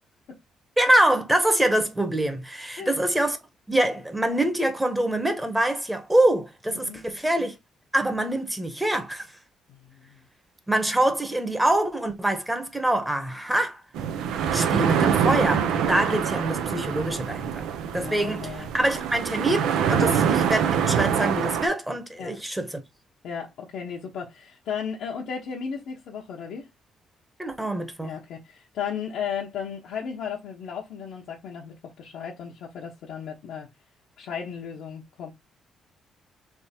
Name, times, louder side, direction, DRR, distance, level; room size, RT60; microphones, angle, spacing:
voice 1, 0.8-3.4 3.7-7.6 7.9-9.3 10.7-13.8 14.5-17.7 17.9-19.6 19.9-22.8 27.4-28.2, right 1 dB, 10° right, 1.1 m, -25 dB
voice 2, 6.7-7.0 9.7-10.2 17.9-18.7 20.0-20.2 22.2-22.4 23.2-26.7 28.0-33.7 34.2-35.3, left 7 dB, 80° left, 0.9 m, -35 dB
sound 1, 13.9-21.7, right 8 dB, 85° right, 0.7 m, -25 dB
3.6 x 3.2 x 4.2 m
cardioid pair, 90°, 0 cm